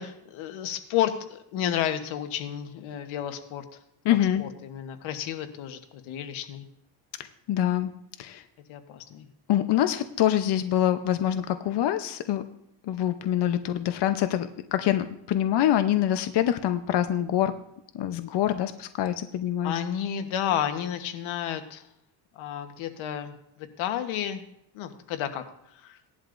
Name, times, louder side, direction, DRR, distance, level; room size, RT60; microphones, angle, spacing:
voice 1, 0.0-3.6 4.4-5.8 6.0-6.7 8.7-9.3 19.6-21.8 22.3-23.3 23.6-24.4 24.7-25.4 25.7-26.0, left 10 dB, 90° left, 8 dB, 1.3 m, -31 dB
voice 2, 4.0-4.4 7.5-7.9 8.2-8.4 9.5-12.4 12.8-17.5 17.9-19.7, left 11 dB, 60° left, 8 dB, 0.8 m, -25 dB
18.0 x 11.0 x 2.6 m, 0.74 s
cardioid pair, 95°, 46 cm